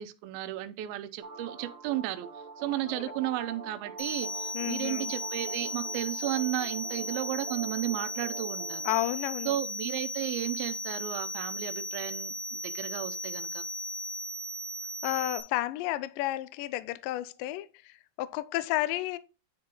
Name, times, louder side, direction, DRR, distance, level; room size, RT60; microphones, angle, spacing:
voice 1, 0.0-2.3 2.6-8.9 9.5-13.6, right 14 dB, 80° right, 2.3 m, -34 dB
sound 1, 1.2-9.0, right 5 dB, 45° right, 1.7 m, -44 dB
sound 2, 4.0-15.4, left 1 dB, 45° left, 1.2 m, -36 dB
voice 2, 4.5-5.1 8.8-9.6 15.0-19.2, left 16 dB, 85° left, 2.0 m, -32 dB
9.5 x 4.3 x 3.8 m
omnidirectional pair, 4.5 m